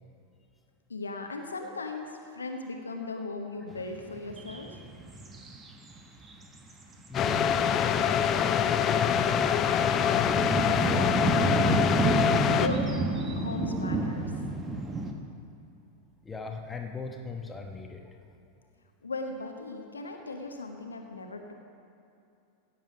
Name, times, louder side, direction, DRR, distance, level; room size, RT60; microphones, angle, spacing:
voice 1, 0.9-4.8 12.5-12.9 13.3-14.3 19.0-21.5, left 3 dB, 75° left, 4 dB, 1.0 m, -37 dB
sound 1, 3.7-6.0 6.2-6.4 6.7-8.3 8.9-15.1, right 2 dB, 20° right, 1.2 m, -30 dB
sound 2, 7.1-12.7, left 8 dB, 30° left, 0.5 m, -25 dB
voice 2, 7.1-8.3 8.6-10.5 10.8-11.6 13.3-13.4 16.2-18.0, left 4 dB, 15° left, 3 dB, 1.1 m, -39 dB
16.5 x 7.5 x 5.2 m, 2.7 s
figure-of-eight pair, 90°, 0 cm